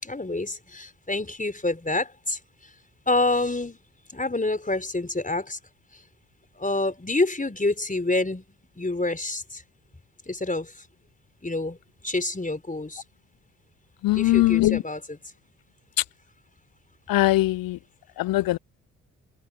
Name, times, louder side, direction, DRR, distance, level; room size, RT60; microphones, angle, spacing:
voice 1, 0.0-2.4 3.1-3.8 4.1-5.6 6.6-8.4 8.8-9.6 10.3-10.7 11.4-11.8 12.0-13.0 14.1-15.0, left 2 dB, 20° left, 4.8 m, -27 dB
voice 2, 14.0-14.8 17.1-17.8 18.2-18.6, left 17 dB, 65° left, 0.6 m, -21 dB
open air
hypercardioid pair, 40°, 38 cm